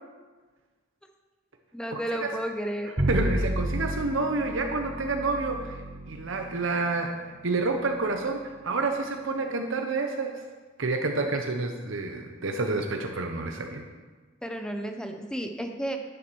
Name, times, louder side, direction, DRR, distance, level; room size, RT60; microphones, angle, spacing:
voice 1, 1.7-2.9 14.4-16.0, right 1 dB, 5° left, 5 dB, 0.9 m, -32 dB
Bowed string instrument, 3.0-9.4, equal, 35° right, 1.5 m, -33 dB
voice 2, 3.1-5.8 6.1-10.4 10.8-13.8, right 3 dB, 65° right, 4 dB, 0.9 m, -29 dB
11.0 x 10.5 x 4.6 m, 1.4 s
head